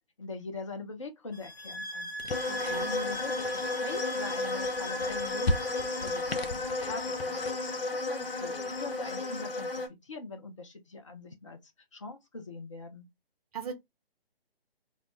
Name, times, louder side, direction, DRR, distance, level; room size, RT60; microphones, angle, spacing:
voice 1, 0.2-2.1 2.8-5.6 6.0-7.4 7.9-11.6 11.9-13.1, left 3 dB, 35° left, 0.4 m, -42 dB
sound 1, 1.3-6.4, right 1 dB, 10° left, 0.8 m, -41 dB
sound 2, 2.2-7.6, left 2 dB, 85° left, 0.6 m, -38 dB
sound 3, 2.3-9.9, left 3 dB, 65° left, 0.9 m, -33 dB
voice 2, 2.5-3.0 13.5-13.7, right 6 dB, 40° right, 0.5 m, -38 dB
2.1 x 2.0 x 2.9 m
figure-of-eight pair, 140°, 30 cm